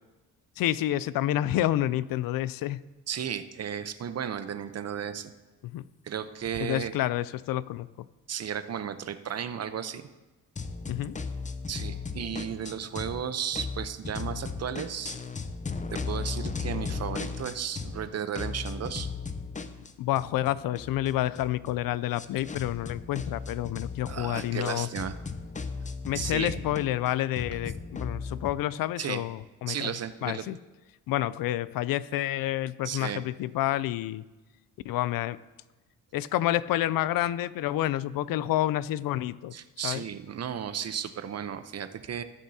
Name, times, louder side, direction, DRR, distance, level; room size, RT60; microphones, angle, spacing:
voice 1, 0.6-2.8 5.6-5.8 6.6-7.9 10.9-11.1 20.0-24.9 26.0-30.0 30.2-30.6 31.1-34.2 34.8-35.4 36.1-39.5 39.8-40.0, left 14 dB, 70° left, 18 dB, 0.5 m, -29 dB
voice 2, 3.1-5.3 6.0-6.9 8.3-10.1 11.7-15.2 15.9-19.1 24.1-25.1 26.1-26.6 29.0-29.2 29.7-30.4 32.8-33.2 39.5-42.2, right 8 dB, 45° right, 11 dB, 0.8 m, -34 dB
sound 1, 10.6-13.2 13.5-18.1 18.3-28.6, left 4 dB, 20° left, 0.6 m, -36 dB
18.5 x 7.3 x 2.8 m, 1.1 s
cardioid pair, 75°, 36 cm